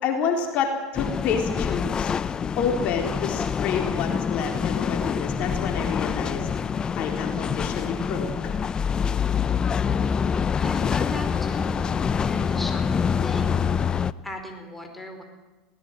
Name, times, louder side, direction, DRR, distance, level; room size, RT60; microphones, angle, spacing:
voice 1, 0.0-2.1 2.6-6.5 7.0-8.3, left 6 dB, 50° left, 3 dB, 3.9 m, -28 dB
sound 1, 1.0-14.1, left 6 dB, 30° left, 0.7 m, -26 dB
voice 2, 10.5-13.6 14.2-15.2, left 1 dB, 5° left, 3 dB, 4.9 m, -37 dB
21.5 x 18.5 x 9.3 m, 1.2 s
hypercardioid pair, 95°, 3 cm